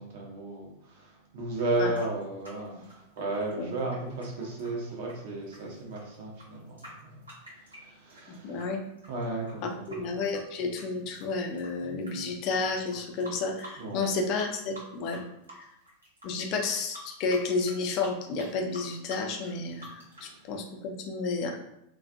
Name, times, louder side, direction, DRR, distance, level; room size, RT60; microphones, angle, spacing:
voice 1, 0.0-7.1 7.8-8.6 9.1-10.3 13.8-14.1 20.2-20.3, right 2 dB, 50° right, -1 dB, 0.7 m, -34 dB
sound 1, 1.5-8.6 9.0-12.1 12.4-12.6 12.9-14.1 14.4-15.2 15.4-20.3, right 1 dB, 80° right, 1.0 m, -48 dB
voice 2, 8.3-8.9 9.6-15.2 15.6-15.7 16.2-21.5, left 4 dB, 40° left, 3 dB, 0.4 m, -31 dB
2.4 x 2.2 x 2.5 m, 0.80 s
figure-of-eight pair, 90°, 0 cm